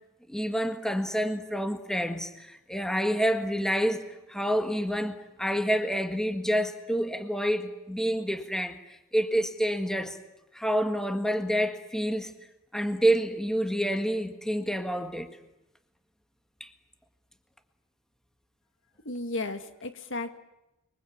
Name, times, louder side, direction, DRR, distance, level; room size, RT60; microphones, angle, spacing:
voice 1, 0.3-8.8 9.1-10.2 10.5-12.3 12.7-15.3 16.6-16.7, equal, 5° left, 7 dB, 1.6 m, -28 dB
voice 2, 19.1-20.4, left 2 dB, 60° left, 8 dB, 1.9 m, -34 dB
29.5 x 23.5 x 8.6 m, 0.91 s
head